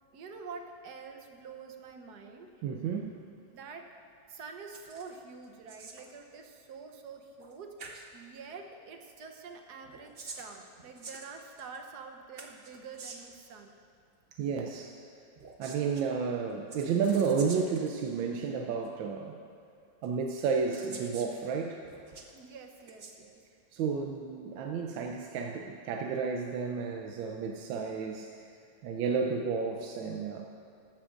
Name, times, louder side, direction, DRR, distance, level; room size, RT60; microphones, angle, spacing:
voice 1, 0.1-2.5 3.5-3.9 4.3-13.7 22.3-23.4, right 5 dB, 65° right, 4 dB, 1.3 m, -47 dB
voice 2, 2.6-3.2 14.4-14.9 15.6-19.4 20.0-21.8 23.7-28.4 28.8-30.5, right 5 dB, 90° right, 2 dB, 1.4 m, -31 dB
sound 1, 4.7-5.2 5.4-6.1 7.4-7.5 7.8-8.1 9.8-11.8 12.4-13.4 15.3-16.1 16.7-17.9 18.8-18.9 20.0-20.1 20.7-21.3 21.8-22.3 22.8-23.1, right 4 dB, 45° right, 0.8 m, -47 dB
14.0 x 13.0 x 2.5 m, 2.4 s
omnidirectional pair, 2.0 m